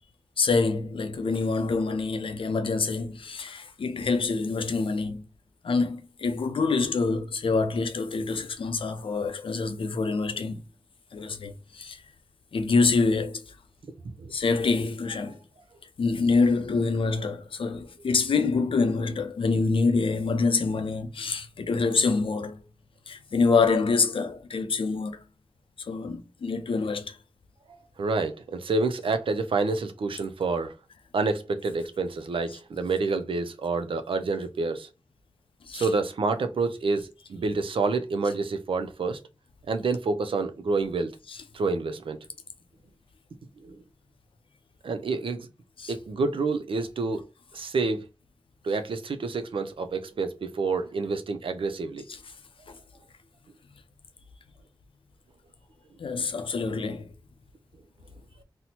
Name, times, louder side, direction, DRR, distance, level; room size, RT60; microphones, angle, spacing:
voice 1, 0.4-5.2 5.6-10.6 11.1-12.0 12.5-13.5 14.3-15.4 16.0-22.6 23.1-25.2 25.8-27.2 35.6-35.9 41.3-41.4 45.8-45.9 52.1-52.2 52.7-52.8 56.0-57.1, left 4 dB, 80° left, 0.5 m, -26 dB
voice 2, 28.0-30.7 31.1-34.9 35.7-39.2 39.7-41.1 41.5-42.2 43.6-43.8 44.8-45.5 45.9-47.2 47.5-48.1 48.6-52.0, right 3 dB, 85° right, 0.4 m, -28 dB
4.1 x 2.1 x 2.8 m
cardioid pair, 40°, 9 cm